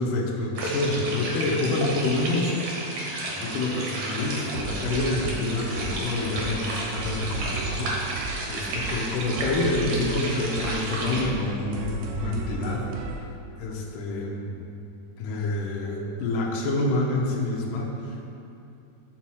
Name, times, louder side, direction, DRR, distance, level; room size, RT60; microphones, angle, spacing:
voice 1, 0.0-2.5 3.3-12.9 13.6-14.6 15.2-18.3, left 2 dB, 85° left, -1 dB, 1.9 m, -27 dB
sound 1, 0.6-11.2, right 2 dB, 70° right, 2.0 m, -32 dB
sound 2, 3.5-13.2, right 3 dB, 90° right, 2.0 m, -35 dB
6.3 x 4.4 x 6.2 m, 2.8 s
omnidirectional pair, 5.1 m